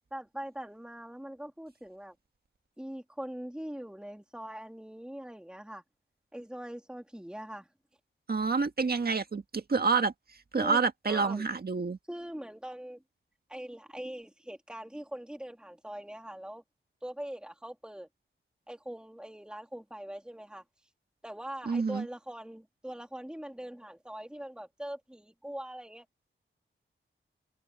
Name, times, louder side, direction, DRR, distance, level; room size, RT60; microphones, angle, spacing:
voice 1, 0.1-2.1 2.8-5.8 6.3-7.7 10.6-11.4 12.1-13.0 13.5-16.6 17.0-18.1 18.7-20.6 21.2-26.1, right 1 dB, 5° right, 2.4 m, -42 dB
voice 2, 8.3-10.1 10.5-12.0 21.7-22.1, right 4 dB, 50° right, 1.7 m, -28 dB
wide cardioid pair, 115°, 21 cm